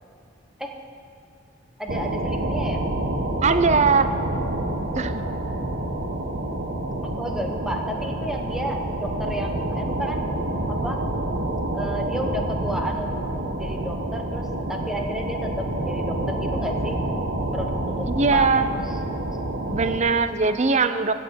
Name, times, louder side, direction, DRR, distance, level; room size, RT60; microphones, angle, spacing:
voice 1, 1.8-2.9 7.2-10.3 10.7-11.0 11.7-17.0 17.5-18.7, equal, 5° right, 2 dB, 1.1 m, -32 dB
sound 1, 1.9-20.0, right 1 dB, 70° right, 1.2 m, -28 dB
voice 2, 3.4-4.1 5.0-5.1 18.1-18.7 19.7-21.1, right 4 dB, 40° right, 11 dB, 0.6 m, -20 dB
16.0 x 7.3 x 7.2 m, 2.5 s
head